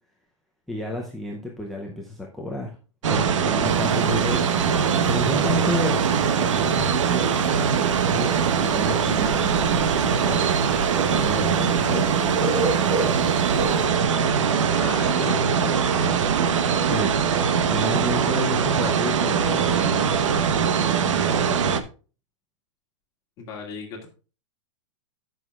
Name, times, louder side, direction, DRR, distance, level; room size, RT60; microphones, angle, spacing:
voice 1, 0.7-2.8 3.1-13.3 16.8-17.2 17.6-21.8, left 1 dB, ahead, -2 dB, 0.6 m, -32 dB
sound 1, 3.0-21.8, right 7 dB, 75° right, 1.0 m, -22 dB
sound 2, 3.6-13.9, right 2 dB, 30° right, 1.4 m, -34 dB
voice 2, 14.7-16.2 23.4-24.1, left 4 dB, 20° left, 0 dB, 2.1 m, -35 dB
16.5 x 6.3 x 2.4 m, 0.35 s
supercardioid pair, 175°, 16 cm